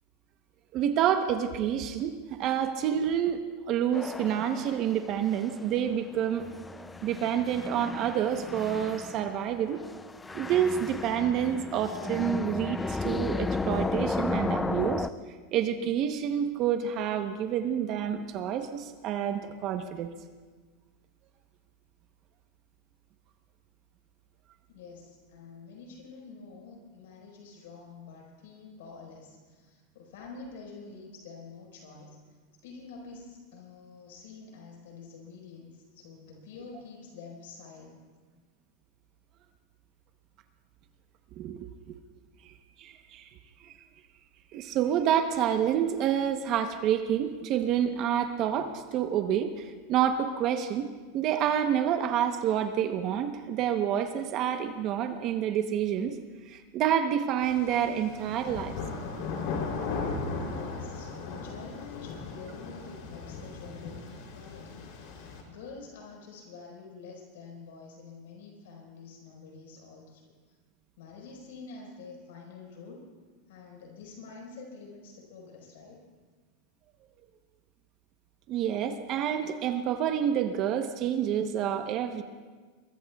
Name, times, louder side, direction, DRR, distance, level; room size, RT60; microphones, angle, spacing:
voice 1, 0.7-3.4 3.7-6.4 7.0-9.8 10.3-15.1 15.5-20.1 41.4-42.0 42.4-42.5 42.8-43.3 43.6-43.7 44.5-50.9 51.1-56.2 56.5-58.7 78.5-82.2, right 9 dB, 40° right, 7 dB, 0.9 m, -28 dB
sound 1, 3.9-15.1, left 3 dB, 10° left, 0.4 m, -35 dB
voice 2, 24.7-32.2 32.6-38.0 60.4-70.2 71.0-73.0 73.5-76.0, left 4 dB, 80° left, -1 dB, 4.7 m, -47 dB
sound 2, 57.4-65.4, left 4 dB, 60° left, 3.3 m, -37 dB
23.0 x 22.5 x 2.4 m, 1.5 s
supercardioid pair, 140°, 0 cm